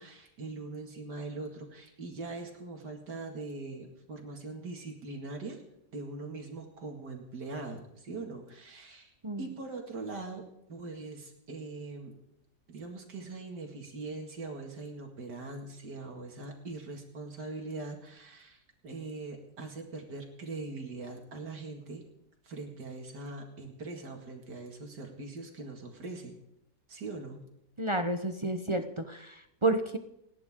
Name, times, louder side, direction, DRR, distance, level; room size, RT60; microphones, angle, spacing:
voice 1, 0.0-5.6 5.9-10.4 10.7-12.1 12.7-22.0 22.4-26.4 26.9-27.4, right 3 dB, 70° right, 2 dB, 2.6 m, -42 dB
voice 2, 27.8-30.0, right 2 dB, 35° right, 7 dB, 0.4 m, -30 dB
29.5 x 10.5 x 3.7 m, 0.82 s
omnidirectional pair, 1.9 m